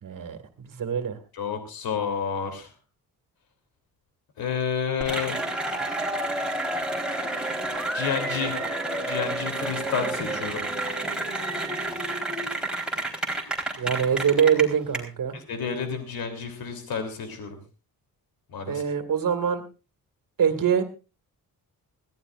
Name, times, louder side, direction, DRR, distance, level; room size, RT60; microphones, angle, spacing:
voice 1, 0.0-1.2 13.8-15.4 18.7-19.6 20.4-20.8, right 7 dB, 60° right, 8 dB, 2.2 m, -24 dB
voice 2, 1.3-2.7 4.4-5.3 7.9-8.5 9.0-10.7 15.3-17.6 18.5-18.8, left 6 dB, 70° left, 6 dB, 3.3 m, -30 dB
Cheering / Applause, 5.0-15.0, right 2 dB, ahead, 4.0 m, -29 dB
21.0 x 16.0 x 2.5 m, 0.32 s
cardioid pair, 100°, 37 cm